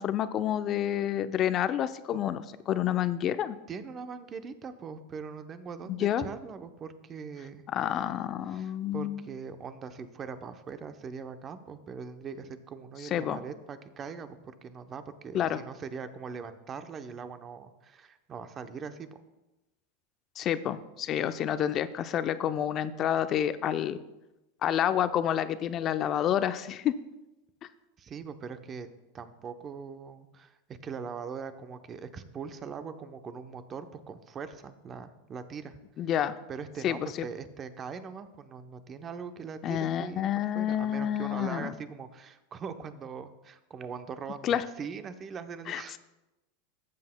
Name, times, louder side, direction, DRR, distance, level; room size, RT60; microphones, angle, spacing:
voice 1, 0.0-3.6 5.9-6.3 7.7-9.2 13.1-13.4 15.3-15.6 20.4-24.0 24.6-27.0 36.0-36.3 36.8-37.3 39.6-41.7 44.4-44.6 45.7-46.0, left 10 dB, 40° left, 12 dB, 0.5 m, -29 dB
voice 2, 3.7-7.6 8.5-14.4 14.6-19.2 28.0-28.9 29.1-36.1 36.5-46.0, right 6 dB, 30° right, 9 dB, 0.7 m, -41 dB
14.5 x 7.6 x 2.2 m, 1.0 s
hypercardioid pair, 110°, 0 cm